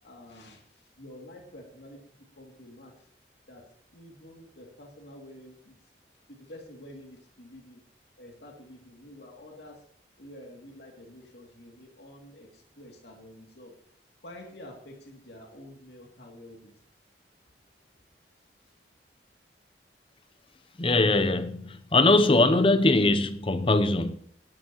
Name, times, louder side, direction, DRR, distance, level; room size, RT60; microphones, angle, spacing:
voice 1, 0.0-3.1 3.5-3.6 3.9-5.7 6.1-7.8 8.2-9.8 10.2-13.7 14.2-16.7 18.6-18.7, left 1 dB, 70° left, 2.6 m, -48 dB
voice 2, 20.8-24.2, left 2 dB, 30° left, 0.7 m, -22 dB
17.5 x 12.5 x 3.0 m
head